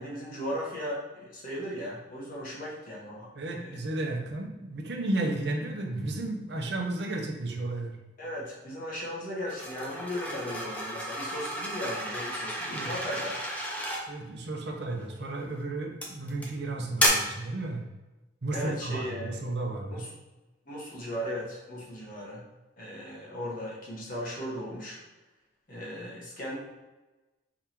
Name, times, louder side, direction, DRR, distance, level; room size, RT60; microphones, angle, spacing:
voice 1, 0.0-3.8 8.2-13.3 18.5-19.4 19.9-20.1 20.7-22.4 22.8-25.0 25.7-26.6, equal, 45° left, -5 dB, 1.4 m, -37 dB
voice 2, 3.3-8.0 12.7-12.9 14.1-17.8 18.4-20.0, right 2 dB, 60° right, 1 dB, 0.8 m, -33 dB
sound 1, 9.5-14.0 15.0-15.3 16.0-16.5 17.0-17.1, equal, 10° left, 0.6 m, -32 dB
4.7 x 3.7 x 2.9 m, 1.1 s
head